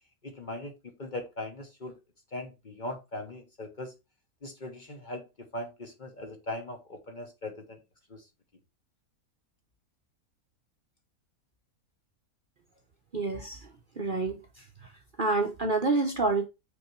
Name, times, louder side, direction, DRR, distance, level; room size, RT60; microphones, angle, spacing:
voice 1, 0.2-2.0 2.3-3.9 4.4-7.8 8.1-8.2, left 1 dB, 35° left, 1.0 m, -39 dB
voice 2, 13.1-13.6 14.0-14.4 15.2-16.5, right 3 dB, 45° right, 0.8 m, -27 dB
5.9 x 3.6 x 4.4 m
omnidirectional pair, 1.5 m